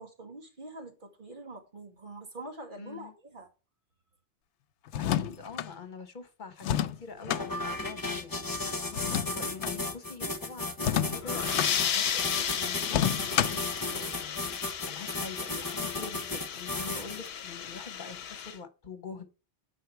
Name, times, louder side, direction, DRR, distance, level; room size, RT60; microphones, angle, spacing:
voice 1, 0.0-3.5, right 2 dB, 45° right, 2.0 m, -45 dB
voice 2, 2.8-3.1 5.0-8.6 9.1-14.5 14.8-19.3, left 5 dB, 45° left, 1.3 m, -45 dB
sound 1, 4.9-5.7 6.6-7.5 8.9-9.8 10.8-11.7 12.9-13.7, left 10 dB, 85° left, 0.9 m, -29 dB
sound 2, 7.3-17.3, left 2 dB, 20° left, 0.9 m, -35 dB
sound 3, 11.1-18.6, left 8 dB, 65° left, 0.9 m, -34 dB
8.0 x 5.6 x 4.4 m
omnidirectional pair, 1.2 m